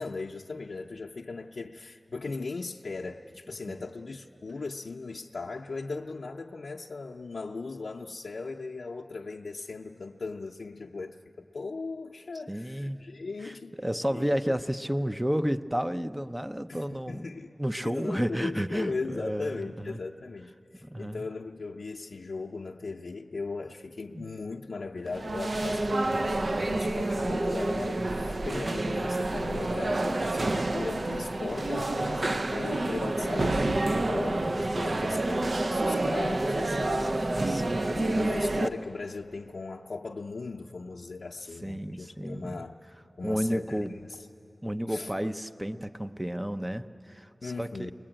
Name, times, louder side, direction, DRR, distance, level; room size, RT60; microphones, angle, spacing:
voice 1, 0.0-13.8 14.1-14.6 16.7-17.5 17.8-37.3 37.8-42.8 43.2-44.2 44.9-45.1 47.4-47.9, left 3 dB, 85° left, -1 dB, 0.6 m, -38 dB
voice 2, 12.5-13.0 13.4-17.3 17.6-20.0 20.8-21.2 24.1-24.3 34.9-35.2 37.0-38.0 41.6-42.6 43.2-43.9 44.6-47.9, equal, 15° right, 10 dB, 0.6 m, -32 dB
sound 1, 25.1-38.7, right 2 dB, 55° right, 0.6 m, -28 dB
22.0 x 21.0 x 8.8 m, 2.9 s
wide cardioid pair, 70°, 0 cm